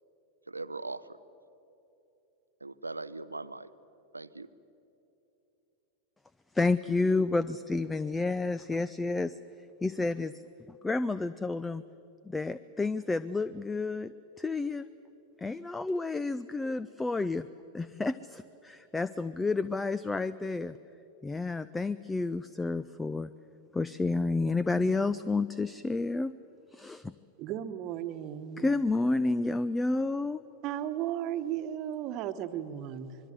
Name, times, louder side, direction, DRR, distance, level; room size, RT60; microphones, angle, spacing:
voice 1, 0.5-1.2 2.6-3.7 4.1-4.5, right 3 dB, 80° right, 14 dB, 0.6 m, -40 dB
voice 2, 6.5-9.4 9.8-10.4 10.7-11.8 12.2-14.8 15.4-17.5 17.7-20.8 21.2-23.3 23.7-26.3 26.7-27.1 28.6-30.4, left 3 dB, 10° left, 16 dB, 0.5 m, -30 dB
voice 3, 27.4-28.7 30.6-33.2, right 11 dB, 40° right, 10 dB, 1.2 m, -35 dB
25.5 x 22.0 x 7.6 m, 3.0 s
figure-of-eight pair, 90°, 0 cm